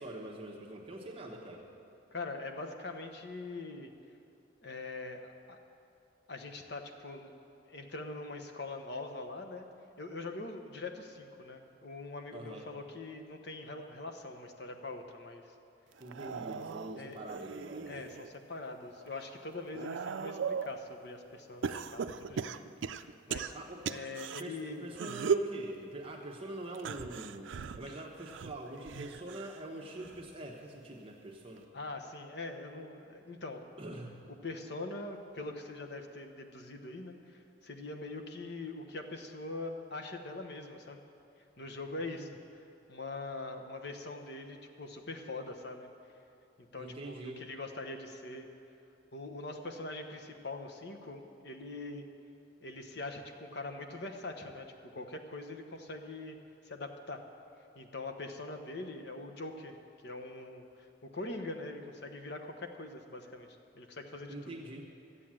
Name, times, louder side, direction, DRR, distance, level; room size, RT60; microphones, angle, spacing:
voice 1, 0.0-1.6 12.3-12.7 16.0-17.9 23.5-23.8 24.4-31.7 33.8-34.2 42.2-42.3 46.8-47.4 64.3-64.9, right 1 dB, 30° right, -2 dB, 1.0 m, -44 dB
voice 2, 2.1-3.9 4.6-5.6 6.3-7.3 7.7-9.7 10.0-15.5 17.0-17.2 17.8-22.5 23.3-23.6 23.8-24.9 27.9-28.0 31.7-33.7 34.4-41.0 41.6-45.9 46.6-48.5 49.1-52.1 52.6-54.7 54.9-56.4 56.6-57.2 57.7-59.8 60.0-60.7 61.0-64.4, left 2 dB, 60° left, 5 dB, 1.0 m, -43 dB
sound 1, 16.0-18.3 18.8-20.8 21.6-24.4 24.9-25.5 26.7-29.6 30.0-30.4 31.6-31.7, right 6 dB, 80° right, 0.4 m, -38 dB
13.0 x 8.3 x 7.5 m, 2.6 s
head